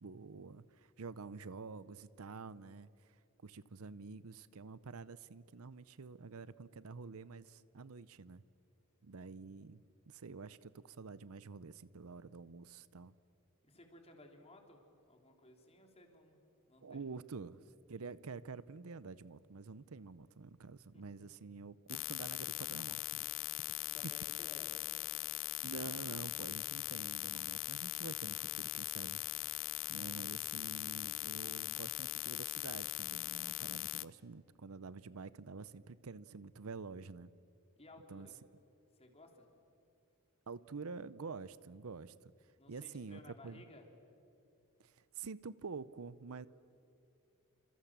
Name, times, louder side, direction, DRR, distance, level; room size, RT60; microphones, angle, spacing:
voice 1, 0.0-3.1 3.4-8.4 9.0-13.1 16.8-17.6 17.9-23.3 24.0-24.1 25.6-29.2 29.5-37.3 38.1-38.3 40.5-42.3 42.7-43.6 44.8-46.5, right 4 dB, 75° right, 17 dB, 0.7 m, -48 dB
voice 2, 13.6-14.8 15.1-16.4 16.7-17.1 20.9-21.3 23.8-24.8 37.8-38.4 38.9-39.5 42.6-43.8, left 1 dB, 25° left, 3 dB, 3.4 m, -58 dB
sound 1, 21.9-34.0, left 17 dB, 60° left, 0.5 m, -40 dB
29.0 x 26.5 x 7.4 m, 2.6 s
head